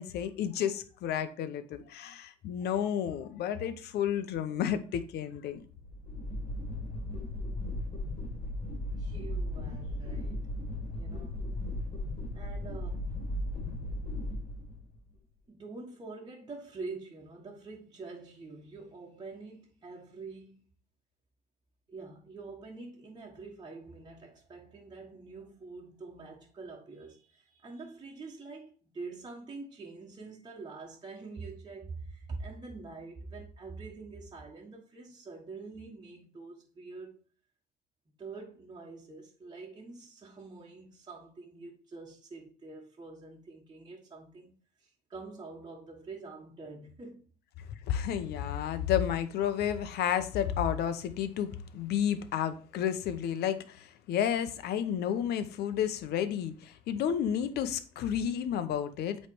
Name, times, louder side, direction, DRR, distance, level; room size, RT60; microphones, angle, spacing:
voice 1, 0.0-5.7 47.7-59.3, left 9 dB, 75° left, 0.8 m, -31 dB
sound 1, 5.6-15.1, left 1 dB, 45° left, 3.1 m, -36 dB
voice 2, 9.0-10.5 10.9-11.4 12.3-13.1 15.5-20.7 21.9-37.2 38.2-44.5 44.8-47.3, right 3 dB, 25° right, 1.4 m, -45 dB
8.1 x 3.3 x 4.7 m
cardioid pair, 110°, 17 cm